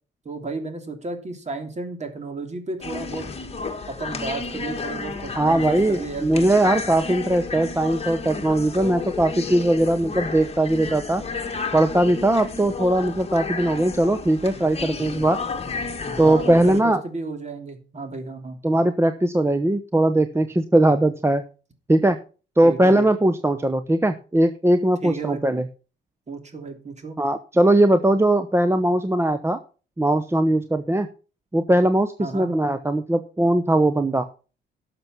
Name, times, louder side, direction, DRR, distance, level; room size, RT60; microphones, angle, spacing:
voice 1, 0.2-3.3 3.9-6.4 16.0-18.6 22.6-23.1 25.0-25.4 26.3-27.2 32.2-32.5, right 3 dB, 35° right, 6 dB, 3.1 m, -33 dB
sound 1, 2.8-16.8, left 4 dB, 30° left, 1.9 m, -32 dB
voice 2, 5.4-11.2 11.7-15.4 16.2-17.0 18.6-21.4 21.9-22.2 22.6-25.6 27.2-29.6 30.0-31.1 31.5-34.3, right 1 dB, 15° right, 10 dB, 0.8 m, -20 dB
12.0 x 6.9 x 6.0 m, 0.36 s
cardioid pair, 90°, 20 cm